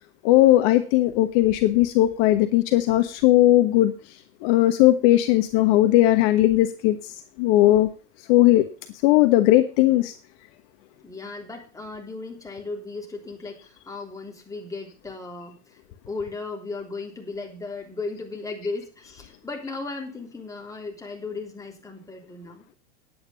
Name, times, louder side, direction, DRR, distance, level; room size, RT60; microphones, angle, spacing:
voice 1, 0.2-3.9 4.4-7.1 7.4-7.9 8.3-8.7 9.0-10.1, left 15 dB, 55° left, 9 dB, 1.2 m, -18 dB
voice 2, 11.0-15.8 16.1-22.7, left 3 dB, 10° left, 1 dB, 3.4 m, -36 dB
10.0 x 9.0 x 5.5 m, 0.35 s
hypercardioid pair, 105°, 35 cm